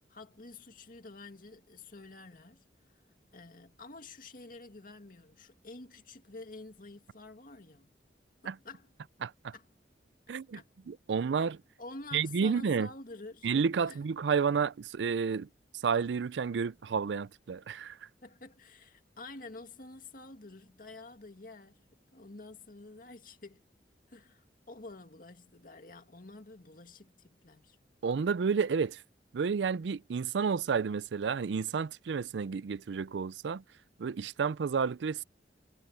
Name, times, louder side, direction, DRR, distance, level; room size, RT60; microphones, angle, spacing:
voice 1, 0.1-2.7 3.3-8.0 8.4-8.9 9.5-9.7 10.5-10.7 11.8-13.5 13.9-14.0 18.2-21.8 22.1-23.6 24.1-27.8, left 2 dB, 50° left, 2.1 m, -49 dB
voice 2, 9.2-9.5 10.3-10.6 10.9-11.6 12.1-12.9 13.4-15.5 15.8-18.0 28.0-29.0 29.3-33.6 34.0-35.2, right 6 dB, 80° right, 0.4 m, -31 dB
head